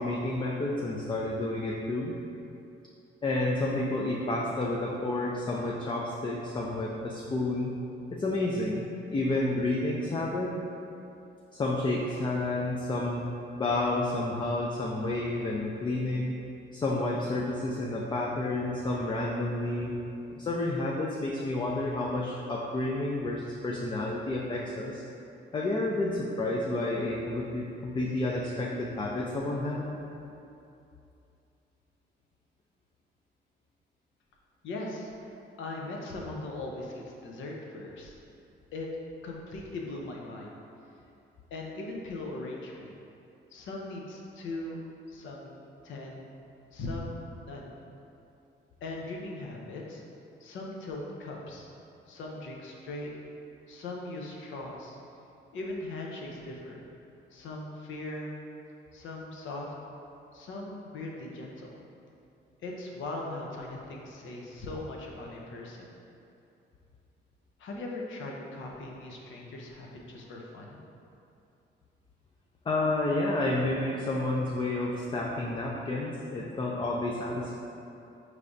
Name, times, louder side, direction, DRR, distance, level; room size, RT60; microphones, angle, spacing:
voice 1, 0.0-2.1 3.2-7.7 8.1-8.8 9.1-10.5 11.5-13.2 13.6-16.3 16.7-20.0 20.4-25.0 25.5-30.0 72.7-77.6, left 2 dB, 25° left, -2 dB, 0.4 m, -30 dB
voice 2, 34.6-35.3 35.6-38.1 38.7-38.9 39.2-40.5 41.5-42.9 43.5-46.3 46.7-47.7 48.8-50.0 50.4-51.7 52.1-53.1 53.7-55.0 55.5-56.8 57.3-58.4 58.9-59.7 60.3-61.8 62.6-65.9 67.6-70.8, left 2 dB, 75° left, -1 dB, 0.6 m, -39 dB
4.7 x 3.2 x 2.6 m, 2.7 s
cardioid pair, 90°, 20 cm